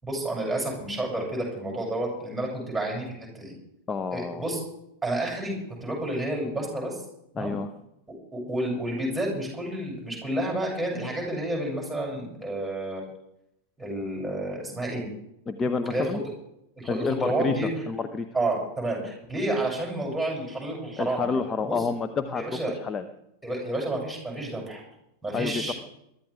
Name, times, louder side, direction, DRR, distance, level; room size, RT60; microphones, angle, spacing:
voice 1, 0.0-3.5 4.1-4.6 5.0-7.0 7.3-7.5 8.3-13.2 13.8-15.1 15.9-16.1 16.8-17.7 18.3-21.3 21.7-21.8 22.3-22.7 23.4-24.8 25.2-25.7, right 1 dB, 5° right, -2 dB, 7.5 m, -30 dB
voice 2, 3.9-4.4 7.3-7.7 15.5-16.2 16.9-17.5 17.9-18.3 21.0-23.0 25.3-25.7, left 5 dB, 20° left, 9 dB, 0.9 m, -29 dB
22.5 x 13.0 x 3.6 m, 0.81 s
figure-of-eight pair, 90°, 0 cm